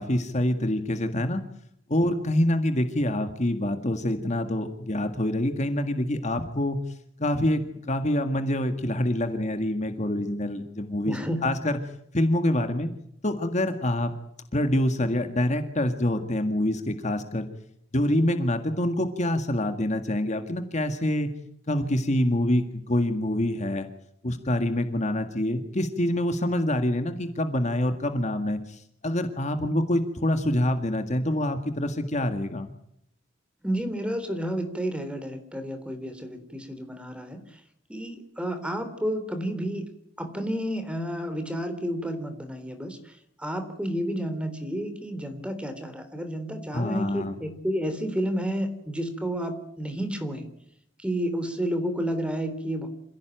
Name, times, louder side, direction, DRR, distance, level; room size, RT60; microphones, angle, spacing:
voice 1, 0.0-1.4 1.9-6.8 7.2-11.8 12.1-12.9 13.2-14.1 14.5-17.5 17.9-21.3 21.7-23.9 24.2-32.7 46.7-47.4, left 1 dB, 40° left, 7 dB, 1.9 m, -26 dB
voice 2, 11.0-11.5 33.6-37.4 37.9-39.8 40.2-50.5 51.0-52.9, equal, 5° right, 8 dB, 3.6 m, -31 dB
27.5 x 16.5 x 9.2 m, 0.73 s
head